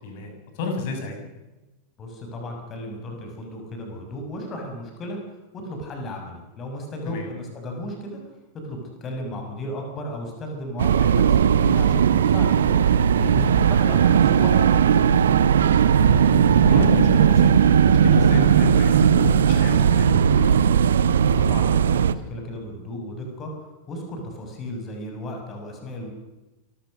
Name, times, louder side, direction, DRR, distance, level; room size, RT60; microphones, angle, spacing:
voice 1, 0.0-1.2 7.0-7.3 13.2-13.5 16.0-20.6, left 4 dB, 50° left, 3 dB, 6.5 m, -30 dB
voice 2, 2.0-5.2 5.5-8.2 8.5-12.8 13.1-15.1 21.3-26.1, left 1 dB, 30° left, 3 dB, 6.3 m, -34 dB
sound 1, 10.8-22.1, right 8 dB, 65° right, 0.9 m, -17 dB
28.0 x 15.0 x 6.5 m, 1.1 s
figure-of-eight pair, 90°, 0 cm